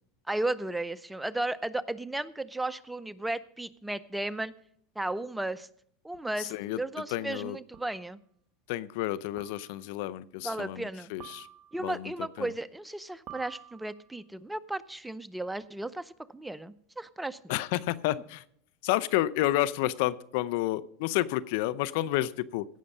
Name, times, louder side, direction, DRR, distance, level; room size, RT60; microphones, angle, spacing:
voice 1, 0.3-4.5 5.0-5.7 6.0-8.2 10.4-11.1 11.7-17.4, right 2 dB, 5° right, 16 dB, 0.5 m, -34 dB
sound 1, 6.1-6.2 7.7-8.1 9.4-9.9 11.2-12.0 13.3-14.2, right 9 dB, 50° right, 1.3 m, -49 dB
voice 2, 6.4-6.8 7.1-7.6 8.7-11.5 11.8-12.1 12.4-12.5 17.5-18.4 18.8-22.6, left 15 dB, 65° left, 17 dB, 0.5 m, -30 dB
16.5 x 6.3 x 5.5 m, 0.68 s
hypercardioid pair, 100°, 0 cm